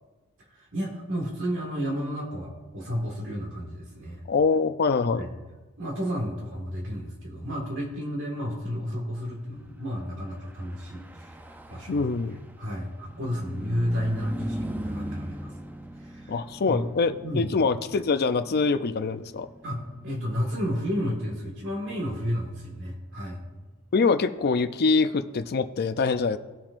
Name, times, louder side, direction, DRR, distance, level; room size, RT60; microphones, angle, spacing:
voice 1, 0.5-4.2 5.1-5.3 5.8-12.1 12.6-15.5 16.0-16.4 16.7-16.8 17.2-17.5 19.6-23.4, equal, 60° right, -2 dB, 1.9 m, -32 dB
voice 2, 4.3-5.3 11.9-12.4 16.3-19.5 23.9-26.4, left 4 dB, 45° left, 11 dB, 0.5 m, -24 dB
Car passing by / Truck, 10.2-23.9, right 1 dB, 10° right, 0.5 m, -41 dB
18.0 x 7.3 x 2.6 m, 1.3 s
head